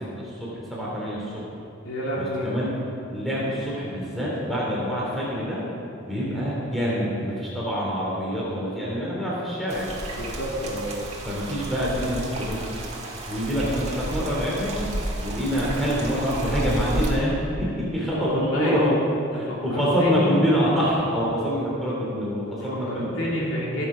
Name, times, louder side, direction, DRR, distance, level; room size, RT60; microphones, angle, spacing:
voice 1, 0.0-1.4 2.1-2.7 3.1-5.6 6.0-9.9 11.2-12.8 13.3-14.8 15.2-19.0 19.3-23.1, equal, ahead, -7 dB, 2.9 m, -26 dB
voice 2, 1.8-2.5 6.2-6.4 10.1-10.9 18.2-18.8 19.3-20.3 22.7-23.9, equal, 75° left, -5 dB, 2.9 m, -29 dB
sound 1, 9.7-17.1, right 1 dB, 30° right, 1.6 m, -32 dB
16.5 x 8.2 x 5.0 m, 2.7 s
head